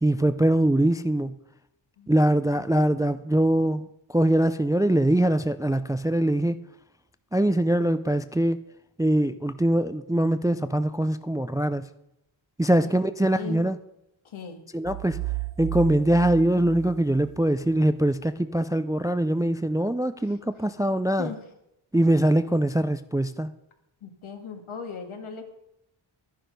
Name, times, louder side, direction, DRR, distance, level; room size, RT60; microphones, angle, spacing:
voice 1, 0.0-1.3 2.1-6.6 7.3-8.6 9.0-11.9 12.6-13.8 14.7-15.2 15.6-21.3 21.9-23.5, right 1 dB, 10° right, 12 dB, 0.3 m, -23 dB
voice 2, 13.2-13.8 14.2-14.6 20.2-20.6 21.1-21.5 24.0-25.5, left 6 dB, 80° left, 5 dB, 1.8 m, -39 dB
sound 1, 14.9-17.7, right 19 dB, 50° right, 0.6 m, -34 dB
11.5 x 10.5 x 5.2 m, 0.83 s
wide cardioid pair, 105°, 48 cm